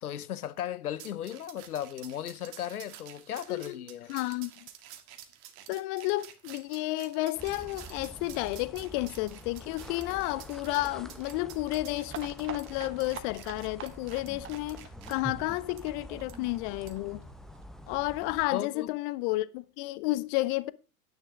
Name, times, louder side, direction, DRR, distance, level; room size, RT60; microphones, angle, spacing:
voice 1, 0.0-4.1 18.5-18.9, left 11 dB, 75° left, 0.8 m, -36 dB
sound 1, 1.0-15.1 15.8-15.9 16.3-16.4 16.9-17.1, right 11 dB, 50° right, 1.9 m, -50 dB
voice 2, 4.1-4.7 5.7-17.2 17.9-20.7, left 19 dB, 40° left, 0.6 m, -32 dB
sound 2, 7.4-18.5, equal, ahead, 1.0 m, -46 dB
sound 3, 12.1-17.6 17.9-18.0 18.2-18.3 18.6-18.7, right 9 dB, 30° right, 1.4 m, -45 dB
11.5 x 10.0 x 3.6 m
figure-of-eight pair, 90°, 44 cm